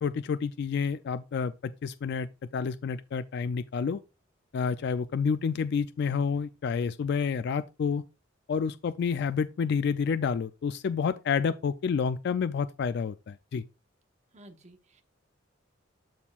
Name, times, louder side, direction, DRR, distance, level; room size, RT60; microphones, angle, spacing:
voice 1, 0.0-2.3 2.5-4.0 4.5-8.0 8.5-13.6, left 6 dB, 55° left, 0.3 m, -29 dB
voice 2, 14.3-15.0, right 1 dB, 35° right, 0.9 m, -53 dB
12.5 x 4.3 x 2.4 m
head